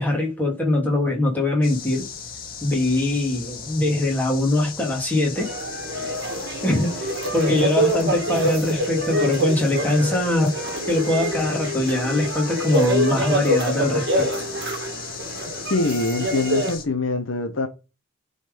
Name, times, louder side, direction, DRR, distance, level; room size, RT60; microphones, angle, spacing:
voice 1, 0.0-2.1 2.6-5.5 6.6-10.5 10.9-14.3, left 1 dB, 10° left, 2.6 m, -22 dB
sound 1, 1.6-16.8, left 6 dB, 45° left, 1.8 m, -37 dB
sound 2, 5.4-16.7, equal, 55° right, 1.7 m, -26 dB
voice 2, 15.7-17.7, left 3 dB, 65° left, 1.1 m, -24 dB
9.6 x 4.2 x 5.2 m
head